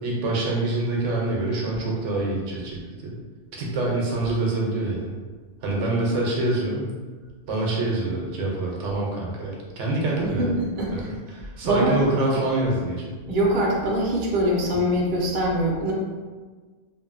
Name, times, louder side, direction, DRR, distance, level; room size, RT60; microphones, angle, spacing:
voice 1, 0.0-3.1 3.5-5.2 5.6-6.9 7.5-10.5 10.9-11.0 11.3-13.0 14.7-14.8, right 2 dB, 80° right, -3 dB, 0.9 m, -26 dB
voice 2, 10.2-11.1 11.6-12.0 13.3-15.9, right 1 dB, 55° right, -3 dB, 0.7 m, -23 dB
2.6 x 2.5 x 2.5 m, 1.4 s
omnidirectional pair, 1.2 m